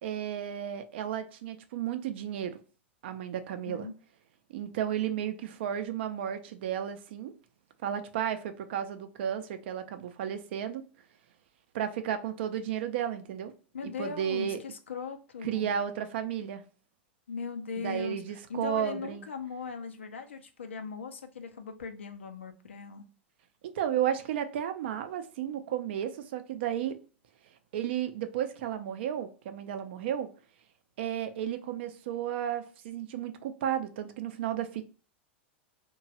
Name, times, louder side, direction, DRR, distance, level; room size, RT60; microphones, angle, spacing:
voice 1, 0.0-2.6 3.0-3.9 4.5-7.3 7.8-10.8 11.7-13.5 13.8-14.6 15.4-16.6 17.8-19.2 23.6-27.0 27.7-30.3 31.0-34.8, right 10 dB, 65° right, 0.5 m, -33 dB
voice 2, 13.7-15.8 17.3-18.2 18.5-23.1, left 5 dB, 85° left, 0.5 m, -39 dB
3.0 x 2.2 x 2.7 m
hypercardioid pair, 100°, 6 cm